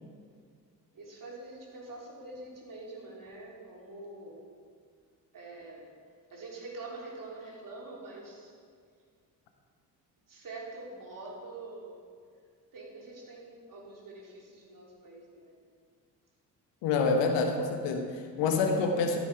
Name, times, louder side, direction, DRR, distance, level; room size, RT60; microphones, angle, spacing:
voice 1, 0.9-4.5 5.3-5.9 6.3-8.5 10.3-11.9 12.7-15.6, right 2 dB, 40° right, -3 dB, 3.3 m, -45 dB
voice 2, 16.8-19.2, left 4 dB, 60° left, 4 dB, 1.4 m, -27 dB
14.0 x 8.2 x 4.7 m, 2.1 s
figure-of-eight pair, 45°, 49 cm